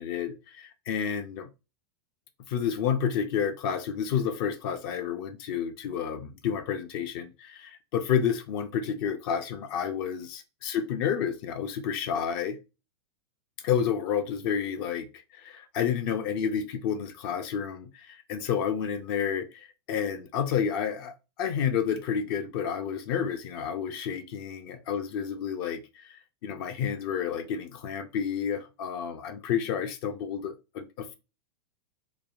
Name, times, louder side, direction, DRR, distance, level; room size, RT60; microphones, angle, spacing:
voice 1, 0.0-1.5 2.5-12.6 13.6-31.2, left 8 dB, 55° left, 0.5 m, -30 dB
3.3 x 2.2 x 2.4 m
hypercardioid pair, 105°, 14 cm